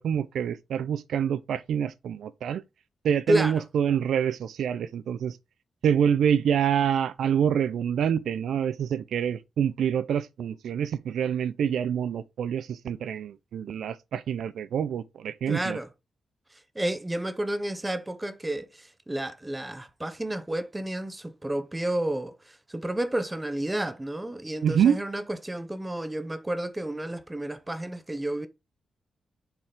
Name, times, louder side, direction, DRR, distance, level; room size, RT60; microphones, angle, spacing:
voice 1, 0.0-2.6 3.0-5.3 5.8-15.8 24.6-25.0, right 8 dB, 75° right, 0.5 m, -26 dB
voice 2, 3.3-3.6 15.5-15.9 16.8-28.5, right 1 dB, 10° right, 0.6 m, -31 dB
7.6 x 4.6 x 3.6 m
wide cardioid pair, 175°, 0 cm